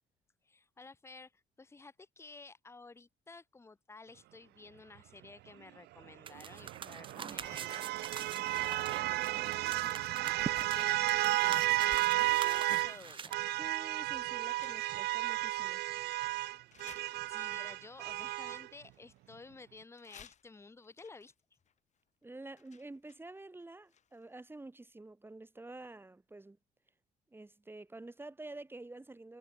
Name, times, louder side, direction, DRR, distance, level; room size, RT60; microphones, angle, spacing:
voice 1, 0.4-13.4 16.3-16.6 17.3-21.3, left 3 dB, 15° left, 1.2 m, -54 dB
sound 1, 6.3-13.3, right 7 dB, 30° right, 0.5 m, -44 dB
sound 2, 6.3-13.0 13.3-18.7, right 18 dB, 75° right, 0.5 m, -33 dB
sound 3, 12.6-13.5 13.7-15.3 15.8-15.9 16.7-17.7 18.6-19.5 20.0-24.4 24.6-24.7, left 8 dB, 45° left, 2.9 m, -60 dB
voice 2, 13.6-15.8 22.2-26.6 27.3-29.4, right 2 dB, 15° right, 4.1 m, -49 dB
cardioid pair, 110°, 17 cm